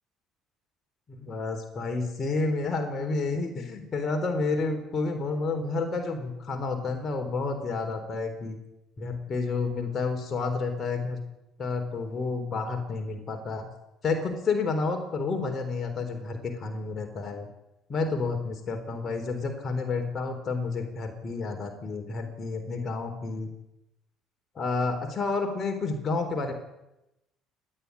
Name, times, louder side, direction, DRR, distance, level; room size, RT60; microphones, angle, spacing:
voice 1, 1.1-8.6 9.0-11.2 11.6-13.7 14.0-17.5 17.9-23.5 24.5-26.5, left 3 dB, 40° left, 4 dB, 4.0 m, -30 dB
28.0 x 10.5 x 9.8 m, 0.91 s
hypercardioid pair, 65°, 0 cm